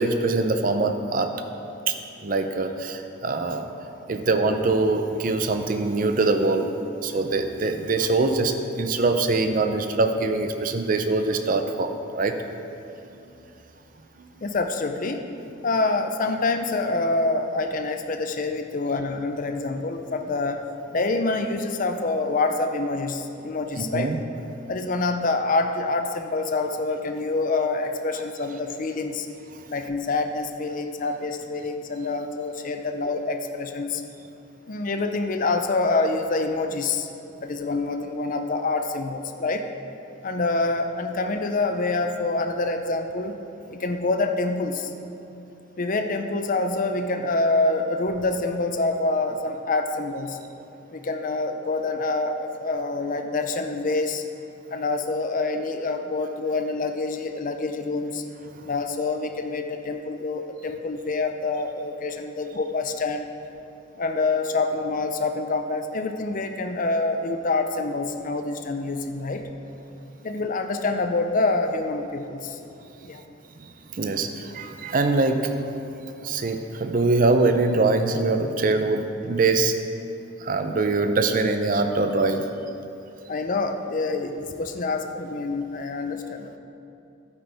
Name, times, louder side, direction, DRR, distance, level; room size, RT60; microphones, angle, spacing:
voice 1, 0.0-1.3 1.9-2.0 2.2-3.7 4.1-6.7 7.0-12.4 13.1-13.2 14.2-14.3 23.8-24.2 29.5-29.6 73.9-75.5 76.0-79.7 80.4-82.5, right 3 dB, 40° right, 7 dB, 0.5 m, -23 dB
voice 2, 14.4-15.3 15.6-20.6 20.9-24.1 24.7-29.3 29.7-34.0 34.7-37.1 37.4-39.6 40.2-43.4 43.7-44.9 45.8-50.4 50.9-54.2 54.7-58.2 58.6-63.2 64.0-69.5 70.2-72.6 73.0-73.2 83.3-86.6, left 3 dB, 40° left, 6 dB, 0.5 m, -26 dB
11.5 x 9.1 x 3.5 m, 2.7 s
head